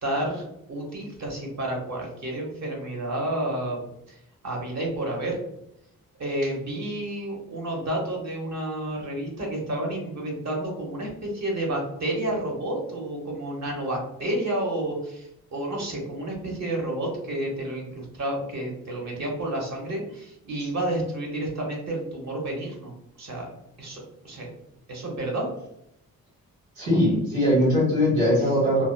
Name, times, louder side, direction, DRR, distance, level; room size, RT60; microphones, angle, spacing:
voice 1, 0.0-3.8 4.1-4.2 4.4-5.4 6.2-22.9 23.2-23.4 23.8-24.5 24.9-25.5, right 1 dB, 50° right, -1 dB, 1.0 m, -30 dB
voice 2, 26.7-28.8, equal, 90° right, -5 dB, 1.5 m, -21 dB
2.8 x 2.0 x 2.2 m, 0.80 s
cardioid pair, 65°, 36 cm